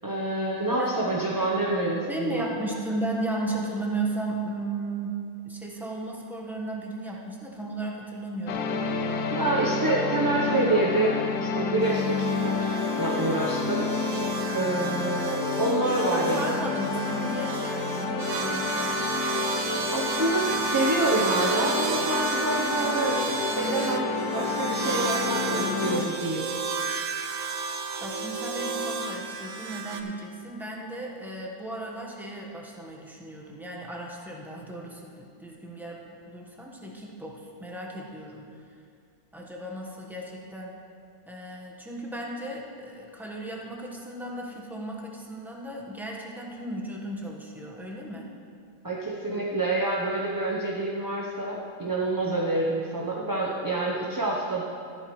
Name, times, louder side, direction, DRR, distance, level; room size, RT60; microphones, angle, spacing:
voice 1, 0.0-2.5 9.3-13.9 14.5-16.6 19.9-23.2 23.6-26.5 48.8-54.7, right 2 dB, 20° right, -4 dB, 0.7 m, -27 dB
voice 2, 2.1-8.7 16.0-19.1 28.0-38.7 39.3-40.7 41.3-48.3, right 2 dB, ahead, -2 dB, 1.1 m, -35 dB
sound 1, 8.5-26.1, left 5 dB, 85° left, 1.3 m, -29 dB
sound 2, 11.8-30.0, right 4 dB, 60° right, 1.0 m, -32 dB
13.5 x 11.5 x 3.2 m, 2.3 s
omnidirectional pair, 1.6 m